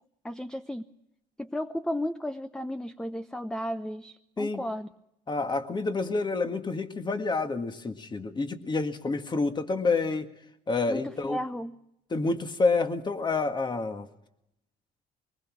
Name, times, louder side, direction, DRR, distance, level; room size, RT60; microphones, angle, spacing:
voice 1, 0.2-0.8 1.4-4.9 10.9-11.8, equal, 5° left, 11 dB, 0.7 m, -34 dB
voice 2, 5.3-10.3 10.7-11.4 12.1-14.1, left 3 dB, 25° left, 8 dB, 1.8 m, -28 dB
23.5 x 20.0 x 6.2 m, 0.82 s
cardioid pair, 110°, 17 cm